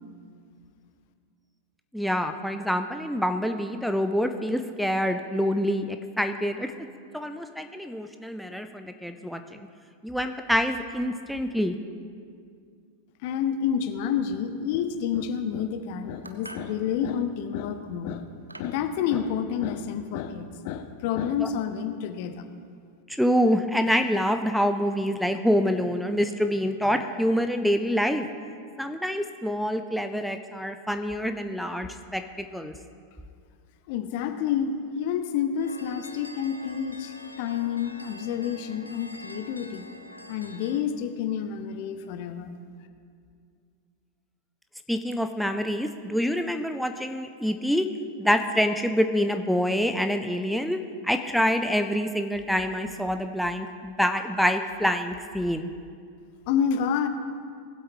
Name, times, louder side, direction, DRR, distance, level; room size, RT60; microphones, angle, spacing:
voice 1, 1.9-6.7 7.1-9.7 10.0-11.8 21.4-21.5 23.1-28.3 28.8-32.7 44.9-47.9 48.2-55.7, equal, ahead, 6 dB, 0.5 m, -26 dB
voice 2, 13.2-18.3 18.6-22.5 33.9-39.9 40.3-42.5 56.5-57.1, left 8 dB, 50° left, 9 dB, 0.8 m, -29 dB
sound 1, 16.2-16.7 17.7-17.9 18.5-18.8, right 2 dB, 85° right, 0.7 m, -44 dB
sound 2, 35.6-40.8, left 1 dB, 85° left, 0.6 m, -45 dB
19.0 x 8.0 x 3.1 m, 2.2 s
figure-of-eight pair, 90°, 0 cm